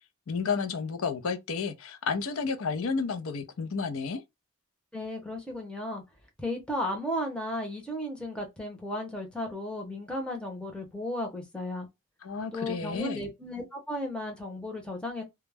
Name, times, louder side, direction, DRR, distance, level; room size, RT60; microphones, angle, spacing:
voice 1, 0.3-4.2 12.2-13.3, left 5 dB, 70° left, 0.5 m, -31 dB
voice 2, 4.9-6.0 6.4-11.9 12.5-15.2, left 1 dB, 5° left, 0.7 m, -34 dB
2.3 x 2.0 x 3.3 m
head